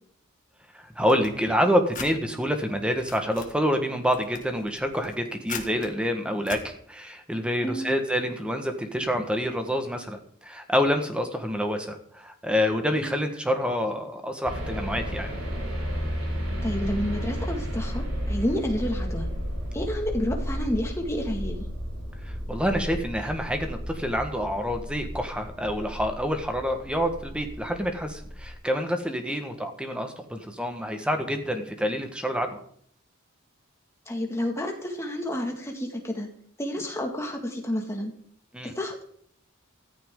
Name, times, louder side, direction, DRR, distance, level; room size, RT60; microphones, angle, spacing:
voice 1, 0.7-15.4 22.2-32.6 38.5-38.7, equal, 5° right, 5 dB, 1.4 m, -27 dB
sound 1, 1.1-2.1 2.7-3.5 4.0-5.9 6.4-6.6, left 6 dB, 40° left, 1.6 m, -40 dB
voice 2, 7.6-8.0 13.0-13.3 16.6-19.3 19.7-21.7 29.3-29.4 34.1-36.3 36.6-38.1 38.6-39.0, equal, 15° left, 2 dB, 2.0 m, -30 dB
sound 2, 14.4-28.5, equal, 90° right, 6.4 m, -33 dB
14.5 x 14.0 x 3.8 m, 0.64 s
head